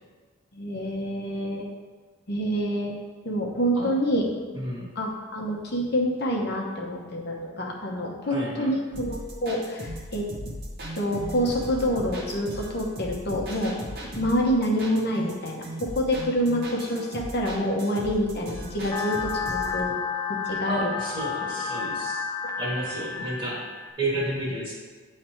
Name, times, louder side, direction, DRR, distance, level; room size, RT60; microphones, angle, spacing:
voice 1, 0.5-1.7 2.3-3.0 3.2-4.3 4.9-10.3 10.9-13.7 14.0-20.0 20.3-20.9, equal, 50° left, -1 dB, 0.9 m, -27 dB
voice 2, 4.5-4.9 8.2-8.7 20.6-22.2 22.6-24.7, right 1 dB, 25° right, -5 dB, 1.6 m, -31 dB
sound 1, 8.9-19.8, equal, 50° right, 1.0 m, -38 dB
sound 2, 18.9-23.9, left 5 dB, 15° left, 0.4 m, -31 dB
9.3 x 3.3 x 4.4 m, 1.4 s
head